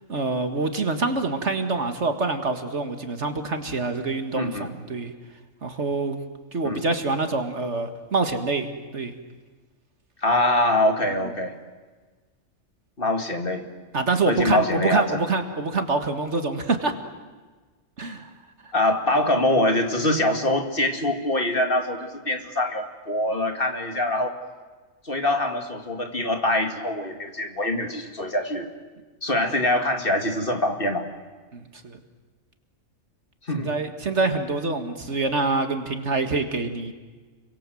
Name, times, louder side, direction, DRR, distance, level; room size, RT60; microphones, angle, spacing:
voice 1, 0.1-5.1 5.6-6.2 6.5-9.1 13.9-16.9 18.0-18.3 18.6-18.7 31.5-32.0 33.5-36.9, right 3 dB, 55° right, 7 dB, 2.1 m, -26 dB
voice 2, 4.4-4.7 6.6-6.8 10.2-11.5 13.0-13.7 14.3-15.2 18.7-24.4 25.0-28.7 29.2-31.0 33.5-33.8, left 1 dB, 40° left, 5 dB, 2.4 m, -24 dB
30.0 x 23.5 x 7.7 m, 1.4 s
omnidirectional pair, 1.4 m